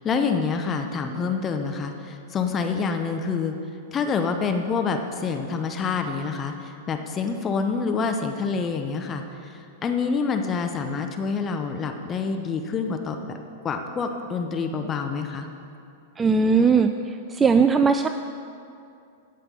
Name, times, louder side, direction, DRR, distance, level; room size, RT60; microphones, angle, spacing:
voice 1, 0.0-3.5 3.9-13.4 13.6-15.5, left 5 dB, 25° left, 5 dB, 0.8 m, -27 dB
voice 2, 16.2-16.9 17.3-18.1, right 5 dB, 15° right, 8 dB, 0.4 m, -18 dB
16.0 x 5.7 x 7.0 m, 2.5 s
figure-of-eight pair, 100°, 0 cm